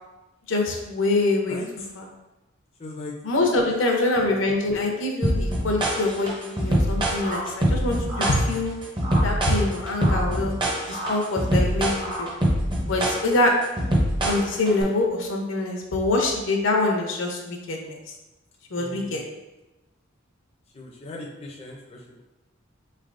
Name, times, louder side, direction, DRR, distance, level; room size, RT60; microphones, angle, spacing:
voice 1, 0.5-2.1 3.2-8.7 9.2-10.5 10.9-12.3 12.9-13.5 14.2-18.0 18.7-19.2, left 2 dB, 70° left, 1 dB, 0.6 m, -25 dB
voice 2, 2.8-3.1 18.8-19.2 20.7-21.8, left 2 dB, 30° left, -2 dB, 0.5 m, -38 dB
sound 1, 5.2-14.8, equal, 25° right, 0.6 m, -24 dB
sound 2, 7.2-7.4 8.1-8.3 9.0-9.3 10.0-10.2 10.9-11.1 12.0-12.2, right 1 dB, 45° right, 1.0 m, -32 dB
4.0 x 3.3 x 2.5 m, 1.0 s
head